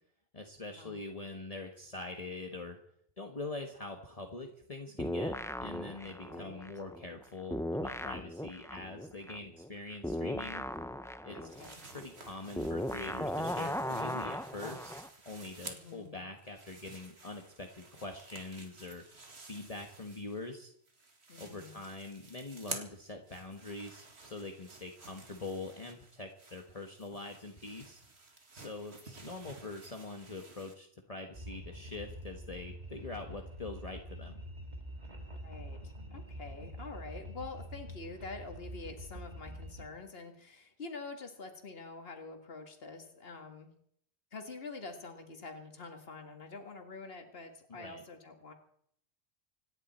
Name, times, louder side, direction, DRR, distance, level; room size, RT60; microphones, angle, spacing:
voice 1, 0.3-2.8 3.2-10.6 11.2-11.4 11.9-19.0 19.5-20.7 21.4-28.0 28.5-34.4 47.7-48.0, left 2 dB, 35° left, 3 dB, 1.4 m, -44 dB
sound 1, 5.0-7.2 7.5-15.1, left 1 dB, 5° left, 0.4 m, -37 dB
voice 2, 6.2-6.7 11.3-11.8 15.6-16.3 21.3-21.8 35.3-43.7 44.3-48.5, left 3 dB, 60° left, 5 dB, 2.1 m, -46 dB
sound 2, 11.5-16.1 16.4-20.6 20.9-30.7, right 3 dB, 70° right, 2.2 m, -51 dB
sound 3, 31.3-39.9, equal, 40° right, 2.1 m, -46 dB
26.0 x 10.5 x 4.3 m, 0.66 s
omnidirectional pair, 1.1 m